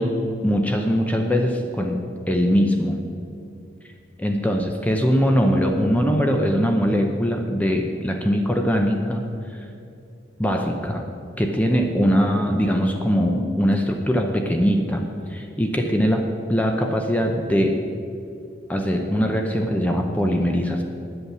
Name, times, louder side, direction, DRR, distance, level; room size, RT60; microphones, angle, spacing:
voice 1, 0.0-3.0 4.2-9.2 9.5-9.6 10.4-11.0 11.4-15.0 15.3-16.2 16.5-17.8 18.7-20.8, equal, 10° left, 3 dB, 0.6 m, -21 dB
9.7 x 8.2 x 7.3 m, 2.6 s
head